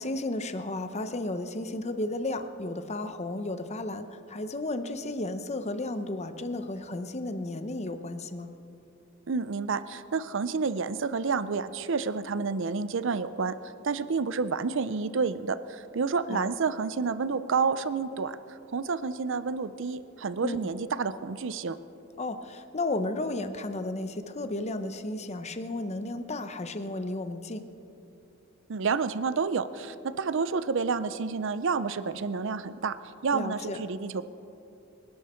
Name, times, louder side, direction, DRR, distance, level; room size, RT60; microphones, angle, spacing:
voice 1, 0.0-8.5 16.3-16.5 20.4-20.6 22.2-27.6 33.3-33.8, left 2 dB, 35° left, 9 dB, 0.8 m, -33 dB
voice 2, 9.3-13.6 13.8-21.8 28.7-33.0 33.2-34.2, right 5 dB, 65° right, 13 dB, 0.5 m, -29 dB
27.0 x 11.5 x 4.4 m, 2.9 s
head